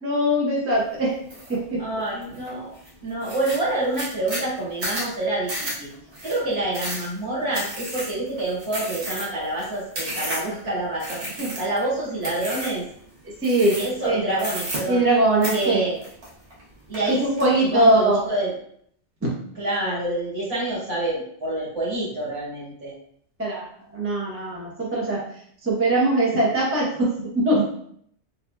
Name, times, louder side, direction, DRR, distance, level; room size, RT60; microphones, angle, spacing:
voice 1, 0.0-1.1 1.5-1.8 11.4-11.5 13.4-13.8 14.0-14.2 14.9-15.8 17.1-18.2 23.4-23.6 23.9-25.2 25.6-27.6, right 1 dB, 15° right, -4 dB, 0.7 m, -21 dB
sound 1, 1.3-1.6 2.0-2.5 2.9-3.0 3.2-10.6 11.0-11.8 12.2-12.8 13.4-14.0 14.3-15.2 15.4-16.6 16.9-17.5, right 1 dB, 80° right, 1.4 m, -32 dB
voice 2, 1.8-2.7 3.0-5.5 5.8-5.9 6.2-12.8 13.7-15.0 15.5-16.0 16.9-17.2 17.7-18.5 19.6-22.9, right 2 dB, 65° right, -8 dB, 1.8 m, -27 dB
4.0 x 2.7 x 2.2 m, 0.65 s
omnidirectional pair, 1.2 m